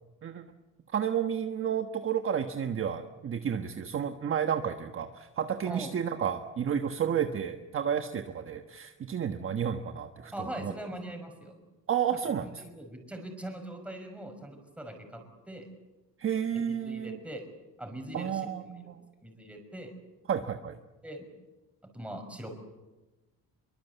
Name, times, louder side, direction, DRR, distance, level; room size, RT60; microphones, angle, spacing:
voice 1, 0.9-10.3 10.6-10.7 11.9-12.5 16.2-17.2 18.1-19.0 20.3-20.8, right 8 dB, 35° right, 6 dB, 1.3 m, -31 dB
voice 2, 10.3-11.5 12.6-15.2 15.5-15.7 16.7-17.5 17.8-18.4 19.2-19.9 21.0-21.3 21.9-22.5, right 1 dB, 5° right, 4 dB, 5.8 m, -41 dB
26.0 x 23.5 x 8.2 m, 1.1 s
cardioid pair, 150°, 37 cm